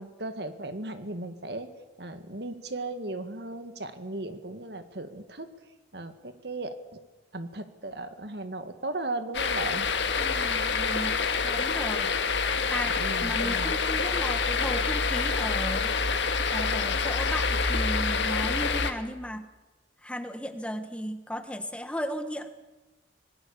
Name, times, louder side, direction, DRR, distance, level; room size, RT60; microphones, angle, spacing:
voice 1, 0.0-1.7 2.0-5.5 5.9-7.0 7.3-9.9 12.8-13.7, right 2 dB, 65° right, 9 dB, 1.9 m, -36 dB
sound 1, 9.3-18.9, left 5 dB, 80° left, 1.7 m, -27 dB
voice 2, 10.2-12.1 12.7-16.0 16.5-19.5 20.0-22.5, equal, 5° left, 9 dB, 1.2 m, -35 dB
26.0 x 20.0 x 7.0 m, 1.1 s
head